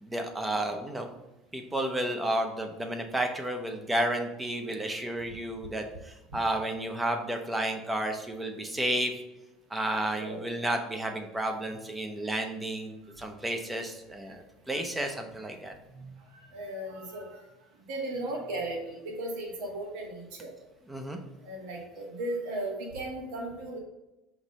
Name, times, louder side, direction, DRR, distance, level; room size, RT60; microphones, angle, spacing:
voice 1, 0.0-1.1 1.5-9.1 9.7-15.7 20.9-21.2, right 1 dB, 10° right, 4 dB, 0.6 m, -32 dB
voice 2, 10.1-10.4 15.4-15.6 15.9-17.4 17.9-20.5 21.4-23.8, right 1 dB, 75° right, -2 dB, 1.3 m, -36 dB
5.8 x 3.0 x 5.4 m, 0.97 s
cardioid pair, 150°, 0 cm